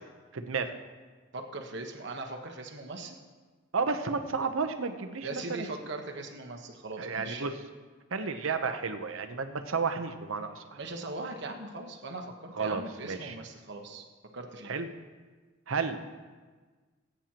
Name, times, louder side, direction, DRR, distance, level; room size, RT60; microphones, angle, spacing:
voice 1, 0.3-0.7 3.7-5.7 7.0-7.5 8.1-10.6 12.5-13.3 14.7-14.9 15.7-16.2, right 4 dB, 85° right, 8 dB, 0.8 m, -32 dB
voice 2, 1.3-3.2 5.2-7.5 10.7-14.0 14.3-14.7, right 2 dB, 60° right, 3 dB, 1.2 m, -40 dB
19.0 x 9.0 x 3.0 m, 1.4 s
head